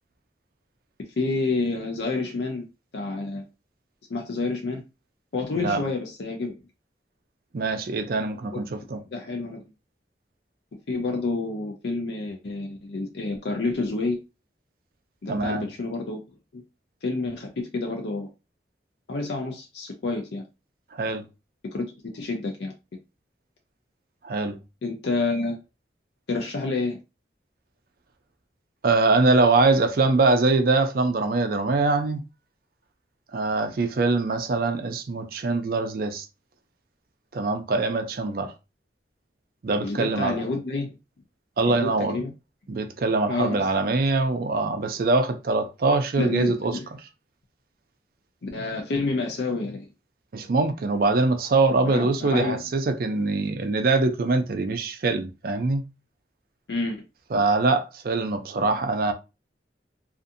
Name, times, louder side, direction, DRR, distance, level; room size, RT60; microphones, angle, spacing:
voice 1, 1.2-2.7 2.9-3.4 4.1-4.8 5.3-6.5 8.5-8.6 9.1-9.7 10.9-14.2 15.2-16.2 16.5-16.6 17.0-18.3 19.1-20.4 21.7-21.9 22.1-22.7 24.8-25.6 26.3-27.0 39.8-41.0 41.6-42.3 43.3-43.8 46.2-46.9 48.4-49.9 51.9-52.6 56.7-57.1, left 3 dB, 70° left, 0.5 m, -29 dB
voice 2, 7.5-9.0 15.3-15.6 20.9-21.2 24.2-24.6 28.8-32.2 33.3-36.2 37.3-38.5 39.6-40.4 41.6-42.2 42.7-46.8 50.3-55.8 57.3-59.1, right 3 dB, 55° right, 0.4 m, -23 dB
2.5 x 2.4 x 2.5 m
head